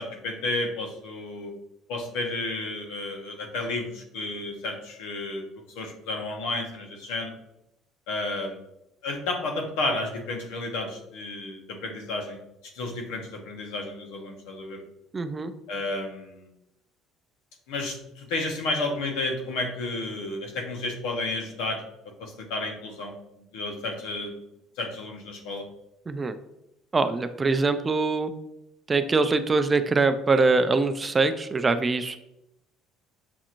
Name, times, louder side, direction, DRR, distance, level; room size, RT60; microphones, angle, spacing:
voice 1, 0.0-1.5 1.9-5.4 5.7-7.3 8.1-8.6 9.0-12.4 12.7-14.8 15.7-16.5 17.7-21.8 22.2-24.3 24.8-25.6, left 2 dB, 85° left, 2 dB, 0.9 m, -32 dB
voice 2, 15.1-15.5 26.1-26.3 26.9-28.3 28.9-32.2, right 3 dB, 20° right, 10 dB, 0.3 m, -23 dB
6.0 x 2.9 x 2.5 m, 0.84 s
cardioid pair, 115°, 0 cm